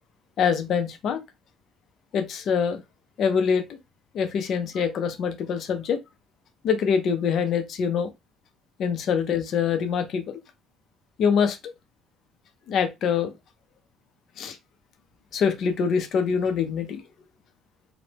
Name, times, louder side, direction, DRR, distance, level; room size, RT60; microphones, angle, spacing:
voice 1, 0.4-1.2 2.1-2.8 3.2-3.6 4.1-6.0 6.6-8.1 8.8-10.4 11.2-11.6 12.7-13.3 14.4-14.6 15.3-17.0, left 6 dB, 45° left, 0.5 m, -24 dB
3.1 x 2.0 x 2.9 m
cardioid pair, 175°, 0 cm